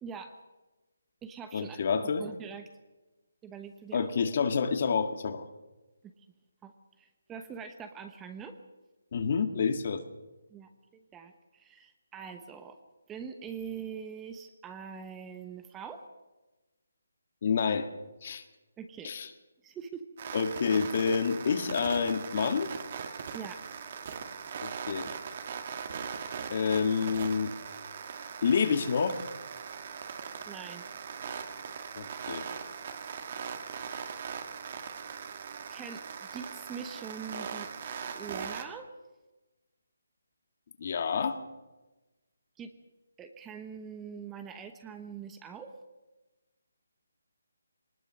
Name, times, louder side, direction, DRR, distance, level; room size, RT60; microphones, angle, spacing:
voice 1, 0.0-0.3 1.2-2.7 3.4-4.1 6.6-6.7 7.0-8.6 10.5-12.8 13.1-16.0 18.8-19.1 19.6-20.1 23.3-23.6 30.5-30.8 35.7-36.0 36.3-37.7 38.0-38.9 42.6-42.7 43.2-45.8, right 6 dB, 10° right, 7 dB, 1.0 m, -43 dB
voice 2, 1.5-2.2 3.9-5.5 9.1-10.0 17.4-17.9 18.2-18.4 19.0-19.3 20.3-22.7 24.6-25.1 26.5-27.5 28.4-29.2 32.0-32.4 40.8-41.4, left 6 dB, 40° left, 8 dB, 1.8 m, -28 dB
sound 1, 20.2-38.6, right 6 dB, 35° right, 1.8 m, -40 dB
21.5 x 19.5 x 6.3 m, 1.1 s
hypercardioid pair, 165°, 0 cm